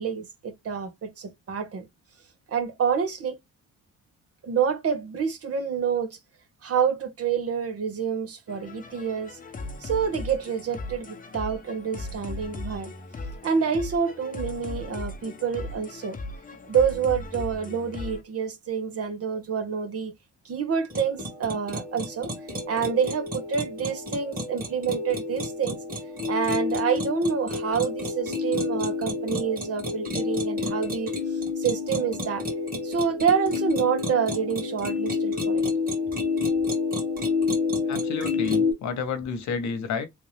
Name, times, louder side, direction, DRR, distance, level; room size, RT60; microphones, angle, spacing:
voice 1, 0.0-1.9 2.5-3.4 4.4-6.2 6.6-9.4 9.8-12.9 13.4-16.2 16.7-20.1 20.4-22.3 22.7-25.8 26.3-31.1 31.6-32.4 32.8-35.6, right 7 dB, 50° right, 1.3 m, -27 dB
sound 1, 8.5-18.2, left 2 dB, 25° left, 0.9 m, -38 dB
sound 2, 20.9-38.7, left 4 dB, 30° right, 2.0 m, -29 dB
voice 2, 37.9-40.1, left 5 dB, 70° left, 1.1 m, -30 dB
3.5 x 2.6 x 3.3 m
cardioid pair, 90°, 30 cm